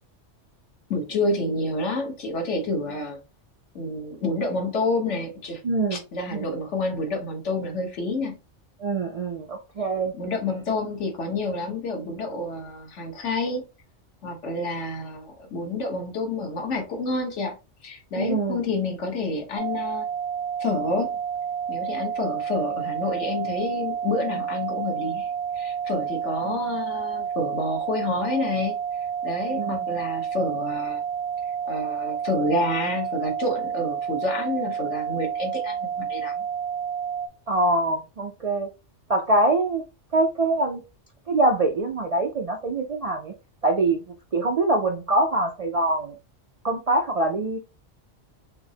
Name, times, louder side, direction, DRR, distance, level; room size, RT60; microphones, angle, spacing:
voice 1, 0.9-3.2 3.7-5.6 5.9-8.4 10.1-13.6 14.2-20.1 20.6-21.2 21.7-28.8 29.2-31.0 31.6-36.4, left 2 dB, 75° left, 1.4 m, -28 dB
voice 2, 5.6-6.0 6.3-6.5 8.8-10.1 18.2-18.6 26.5-26.6 29.5-29.8 37.5-38.7 39.1-39.8 40.1-40.8 41.3-43.3 43.6-46.2 46.6-47.6, right 2 dB, 55° right, 0.4 m, -24 dB
sound 1, 19.6-37.3, right 8 dB, 85° right, 1.0 m, -30 dB
5.9 x 2.0 x 2.7 m
omnidirectional pair, 1.2 m